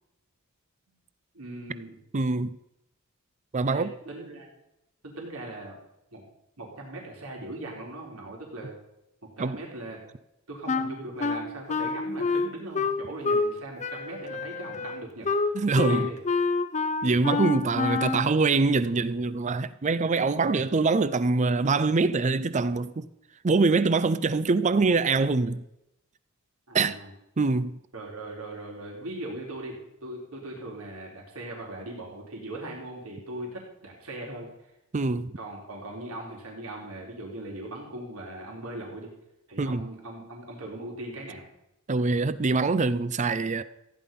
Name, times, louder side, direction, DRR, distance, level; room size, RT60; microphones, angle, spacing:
voice 1, 1.3-2.0 3.7-4.5 5.0-5.8 6.1-6.2 6.6-8.7 9.2-10.0 10.5-15.3 15.9-16.2 26.7-27.1 27.9-29.8 30.0-34.5 35.4-39.1 39.5-41.4, right 1 dB, 80° right, 4.1 m, -39 dB
voice 2, 2.1-2.6 3.5-3.9 9.4-9.6 15.5-16.1 17.0-23.1 23.4-25.6 26.7-26.9 27.4-27.8 34.9-35.3 39.6-39.9 41.9-43.6, right 3 dB, 35° right, 0.5 m, -24 dB
Wind instrument woodwind instrument, 10.7-13.5 13.8-18.3, left 4 dB, 35° left, 0.8 m, -28 dB
15.5 x 10.5 x 5.4 m
head